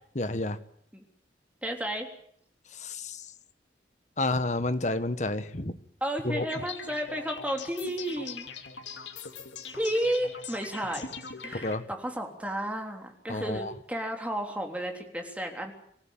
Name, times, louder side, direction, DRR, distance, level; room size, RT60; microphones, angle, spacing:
voice 1, 0.1-0.6 2.7-3.2 4.2-5.8 6.2-6.4 11.5-11.8 13.3-13.7, left 2 dB, 40° left, 11 dB, 1.5 m, -30 dB
voice 2, 1.6-2.1 6.0-8.5 9.7-11.1 11.4-15.7, right 1 dB, 10° right, 3 dB, 3.5 m, -32 dB
sound 1, 6.5-11.8, left 5 dB, 85° left, 2.6 m, -41 dB
25.5 x 16.0 x 9.1 m, 0.67 s
head